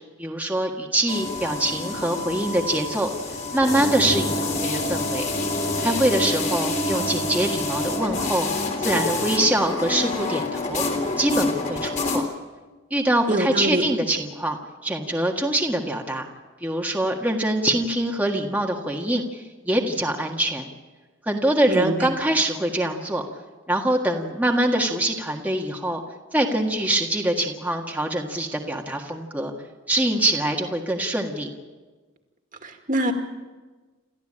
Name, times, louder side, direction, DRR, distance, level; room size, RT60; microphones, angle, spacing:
voice 1, 0.2-3.1 3.5-5.3 5.8-8.5 8.8-10.8 11.2-12.2 12.9-16.3 16.6-20.7 21.2-23.2 23.7-26.0 26.3-29.5 29.9-31.5, right 1 dB, 10° right, 1 dB, 1.7 m, -24 dB
sound 1, 1.1-12.2, left 2 dB, 35° left, 3.6 m, -27 dB
voice 2, 13.3-13.8 21.7-22.1 32.6-33.1, right 1 dB, 40° right, 4 dB, 2.3 m, -24 dB
28.5 x 14.0 x 8.8 m, 1.3 s
head